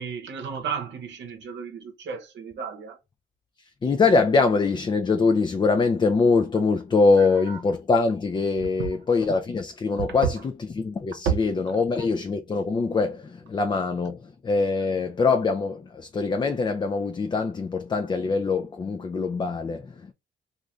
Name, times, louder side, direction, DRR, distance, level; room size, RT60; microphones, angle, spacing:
voice 1, 0.0-3.0 7.2-7.6 8.8-9.0 10.0-10.4 11.2-11.4 11.7-12.1, right 7 dB, 65° right, 0.9 m, -32 dB
voice 2, 3.8-10.4 10.7-20.1, left 4 dB, 25° left, 0.4 m, -23 dB
2.5 x 2.4 x 3.1 m
cardioid pair, 90°, 20 cm